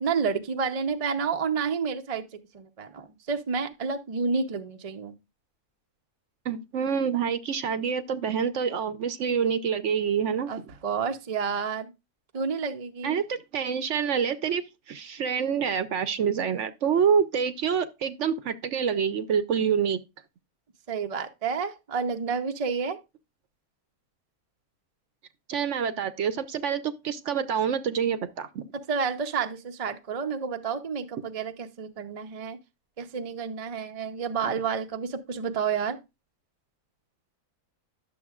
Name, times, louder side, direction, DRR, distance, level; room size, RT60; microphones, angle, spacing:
voice 1, 0.0-5.1 10.5-11.9 12.3-13.2 20.9-23.0 28.9-32.6 33.0-36.0, right 5 dB, 40° right, 0.5 m, -30 dB
voice 2, 6.5-10.7 13.0-20.0 25.5-28.6, right 7 dB, 60° right, 0.9 m, -27 dB
11.0 x 7.0 x 2.4 m
omnidirectional pair, 1.6 m